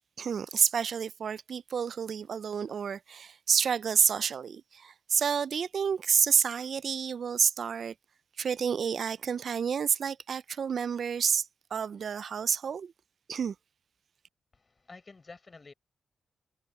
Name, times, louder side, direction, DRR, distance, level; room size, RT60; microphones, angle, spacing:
voice 1, 0.2-7.9 8.4-12.9 13.3-13.5, right 7 dB, 65° right, 0.4 m, -29 dB
voice 2, 14.5-15.7, left 3 dB, 40° left, 5.3 m, -50 dB
supercardioid pair, 40°, 0 cm